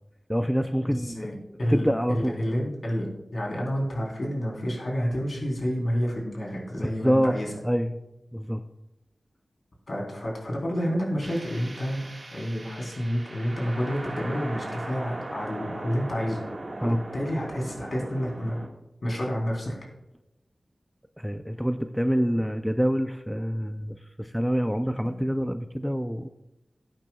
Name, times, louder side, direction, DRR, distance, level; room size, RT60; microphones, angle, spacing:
voice 1, 0.3-1.4 1.7-2.3 6.8-7.3 7.6-8.0 8.3-8.6 16.8-17.0 21.2-26.3, equal, ahead, 8 dB, 0.4 m, -26 dB
voice 2, 0.8-7.5 9.9-16.4 16.8-18.6 19.0-19.7, equal, 55° left, -2 dB, 3.6 m, -29 dB
sound 1, 11.2-18.7, right 2 dB, 45° right, 1.7 m, -39 dB
18.0 x 9.0 x 2.3 m, 0.93 s
wide cardioid pair, 90°, 0 cm